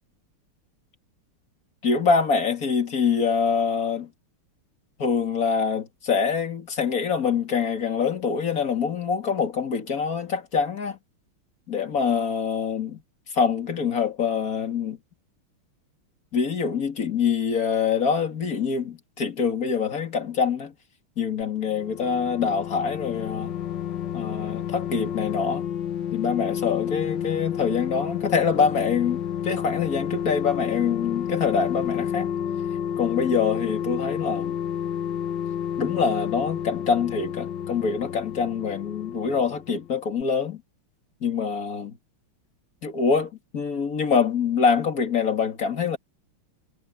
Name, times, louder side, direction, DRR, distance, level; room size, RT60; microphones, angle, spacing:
voice 1, 1.8-4.1 5.0-11.0 11.7-13.0 13.3-15.0 16.3-20.7 21.2-23.5 24.1-25.6 26.1-32.3 33.0-34.6 35.8-40.6 41.2-41.9 42.8-46.0, left 6 dB, 40° left, 2.6 m, -25 dB
sound 1, 21.6-39.9 40.2-40.3, left 9 dB, 60° left, 1.8 m, -30 dB
omnidirectional pair, 2.4 m